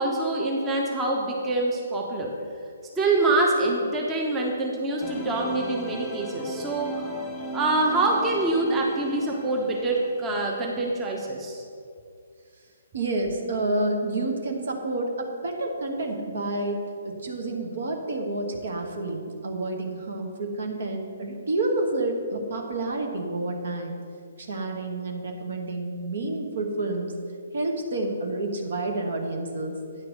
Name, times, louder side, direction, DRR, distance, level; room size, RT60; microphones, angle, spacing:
voice 1, 0.0-2.3 3.0-7.1 7.5-11.6, right 2 dB, 15° right, -1 dB, 0.9 m, -25 dB
sound 1, 5.0-10.7, equal, 10° left, 1.1 m, -36 dB
voice 2, 12.9-24.0 24.4-27.1 27.5-29.8, right 2 dB, 60° right, 2 dB, 1.2 m, -29 dB
9.3 x 4.6 x 6.4 m, 2.3 s
figure-of-eight pair, 130°, 0 cm